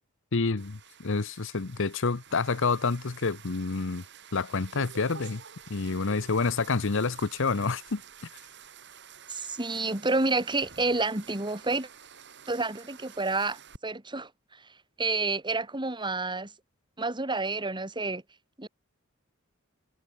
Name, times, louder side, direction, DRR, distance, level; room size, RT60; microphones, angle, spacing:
voice 1, 0.3-4.0 4.3-5.4 5.7-8.0, left 4 dB, 65° left, 0.9 m, -28 dB
sound 1, 0.6-13.8, right 7 dB, 60° right, 5.2 m, -50 dB
voice 2, 9.3-11.9 12.5-14.3 15.0-16.5 17.0-18.2 18.6-18.7, right 3 dB, 20° right, 2.8 m, -29 dB
head